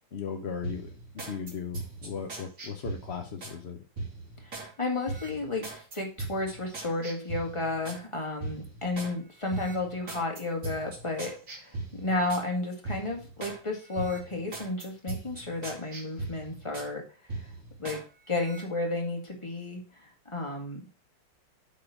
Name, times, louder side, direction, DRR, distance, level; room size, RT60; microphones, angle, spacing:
voice 1, 0.1-3.8, left 6 dB, 60° left, 5 dB, 0.6 m, -37 dB
sound 1, 0.6-3.6 4.0-4.7 5.0-8.0 8.4-9.1 9.5-12.5 12.8-13.6 13.9-16.9 17.3-18.0 18.4-18.6, right 3 dB, 40° right, 2.7 m, -39 dB
voice 2, 4.4-17.0 17.3-17.5 17.8-18.0 18.3-20.8, left 2 dB, 15° left, 1 dB, 1.9 m, -32 dB
8.3 x 4.2 x 5.7 m, 0.35 s
omnidirectional pair, 2.3 m